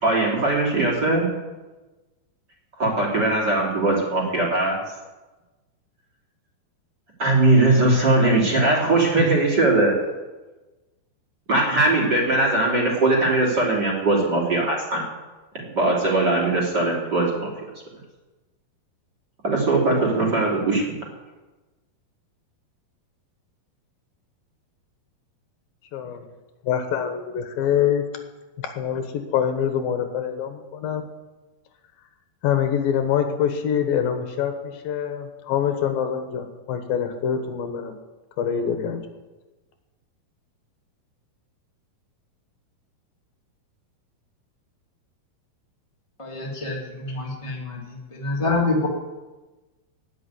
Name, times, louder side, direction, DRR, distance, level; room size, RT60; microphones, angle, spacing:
voice 1, 0.0-1.3 2.8-4.8 7.2-9.9 11.5-15.0 15.7-17.5 19.4-20.8, right 2 dB, 30° right, -3 dB, 3.4 m, -20 dB
voice 2, 25.9-26.2 26.6-28.0 28.6-29.0 29.3-31.0 32.4-37.9 38.4-39.0, left 8 dB, 75° left, 6 dB, 2.9 m, -25 dB
voice 3, 46.2-47.8 48.1-48.9, left 3 dB, 20° left, -2 dB, 0.7 m, -26 dB
18.5 x 6.2 x 9.4 m, 1.2 s
omnidirectional pair, 4.4 m